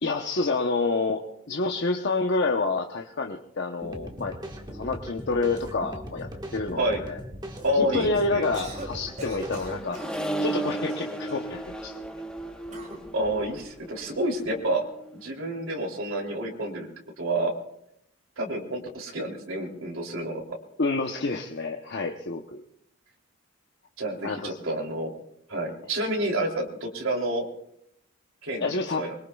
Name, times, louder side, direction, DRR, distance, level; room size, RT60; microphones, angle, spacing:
voice 1, 0.0-4.3 4.7-7.2 7.7-10.0 10.4-11.9 20.8-22.6 24.2-24.6 28.6-29.1, left 3 dB, 55° left, 2 dB, 0.9 m, -28 dB
sound 1, 3.8-9.8, equal, 20° right, 1.5 m, -39 dB
voice 2, 7.6-8.4 13.1-14.8 15.1-16.9 17.2-17.5 18.4-20.4 24.0-25.1 25.5-27.5 28.4-29.1, right 1 dB, 70° right, 0 dB, 3.0 m, -29 dB
Cough, 8.5-8.9 9.2-10.2 10.9-11.5 12.7-13.0, right 2 dB, 35° right, 3.9 m, -40 dB
Accelerating revving vroom, 8.7-15.2, right 2 dB, 5° left, 1.1 m, -35 dB
25.0 x 21.5 x 2.3 m, 0.76 s
head